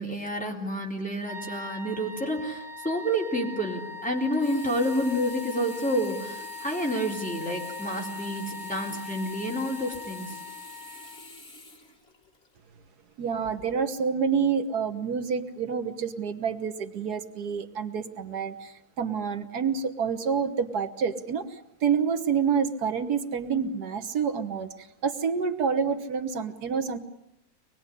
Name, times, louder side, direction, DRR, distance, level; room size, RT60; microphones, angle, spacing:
voice 1, 0.0-10.4, equal, 5° left, -1 dB, 3.7 m, -29 dB
sound 1, 1.2-11.2, left 4 dB, 60° left, 4.5 m, -41 dB
Sink (filling or washing), 4.3-12.6 13.1-13.2, left 2 dB, 40° left, 2.7 m, -47 dB
voice 2, 13.2-27.0, right 6 dB, 85° right, 8 dB, 1.8 m, -28 dB
25.5 x 20.0 x 10.0 m, 0.87 s
omnidirectional pair, 1.6 m